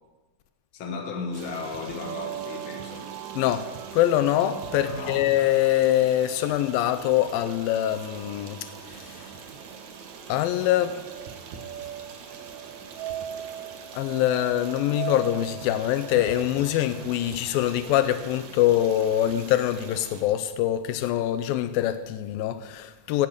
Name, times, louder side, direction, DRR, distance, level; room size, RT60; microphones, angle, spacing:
voice 1, 0.7-3.1 4.8-5.4, left 4 dB, 45° left, 1.8 m, -35 dB
Stream, 1.3-20.2, right 5 dB, 65° right, 2.3 m, -44 dB
sound 1, 1.8-17.4, right 11 dB, 90° right, 1.5 m, -40 dB
voice 2, 3.4-9.3 10.3-11.0 13.9-23.3, left 12 dB, 85° left, 2.4 m, -24 dB
16.5 x 8.3 x 6.8 m
omnidirectional pair, 4.1 m